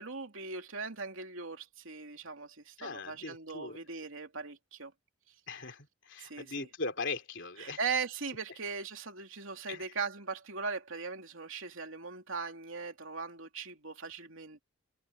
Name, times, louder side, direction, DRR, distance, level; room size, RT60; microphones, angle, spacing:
voice 1, 0.0-4.9 6.2-6.7 7.6-14.6, right 5 dB, 70° right, 3.0 m, -39 dB
voice 2, 2.8-3.8 5.5-7.8 9.7-9.8, left 3 dB, 60° left, 3.5 m, -39 dB
head